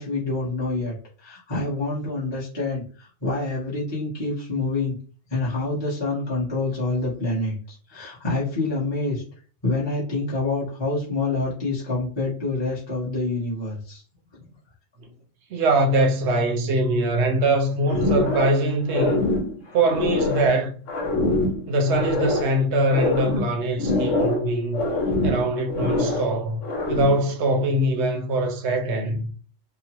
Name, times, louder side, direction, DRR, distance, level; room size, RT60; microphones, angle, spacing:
voice 1, 0.0-5.0 5.3-9.2 9.6-14.0, left 2 dB, 25° left, 0.8 m, -27 dB
voice 2, 15.5-19.2 19.7-20.7 21.7-24.8 25.2-26.6 26.9-29.3, right 1 dB, 65° right, 0.9 m, -22 dB
sound 1, 17.9-18.6 18.9-20.5 20.9-22.5 22.9-24.5 24.7-26.3 26.6-27.2, left 2 dB, 75° left, 1.2 m, -24 dB
2.9 x 2.0 x 2.8 m
omnidirectional pair, 1.3 m